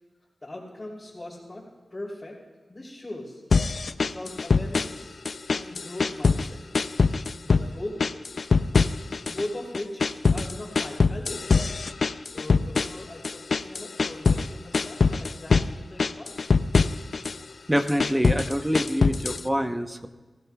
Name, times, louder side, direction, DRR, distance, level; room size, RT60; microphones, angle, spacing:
voice 1, 0.4-2.4 2.7-3.4 4.0-5.2 5.6-6.6 7.4-8.0 8.9-11.5 12.3-16.3, left 1 dB, 30° left, -7 dB, 3.3 m, -39 dB
sound 1, 3.5-5.0 5.3-6.5 6.7-7.7 8.0-9.5 9.7-14.5 14.7-15.7 16.0-17.4 17.8-19.5, left 4 dB, 75° left, 0.4 m, -23 dB
voice 2, 17.7-20.1, equal, 10° right, 6 dB, 0.9 m, -26 dB
23.5 x 16.0 x 2.3 m, 1.3 s
wide cardioid pair, 70°, 0 cm